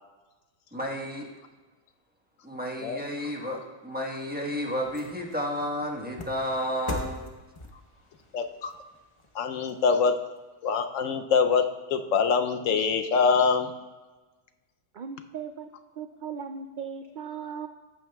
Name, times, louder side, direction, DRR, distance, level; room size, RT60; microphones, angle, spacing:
voice 1, 0.7-1.3 2.4-7.3, equal, 10° right, -1 dB, 1.2 m, -32 dB
sound 1, 3.9-10.4 10.8-10.9, left 2 dB, 25° left, 0.9 m, -43 dB
voice 2, 8.3-8.8 9.3-10.1 10.6-13.7, left 5 dB, 80° left, 7 dB, 1.0 m, -24 dB
voice 3, 14.9-17.7, right 6 dB, 70° right, 6 dB, 0.4 m, -38 dB
14.5 x 9.0 x 2.3 m, 1.2 s
omnidirectional pair, 1.3 m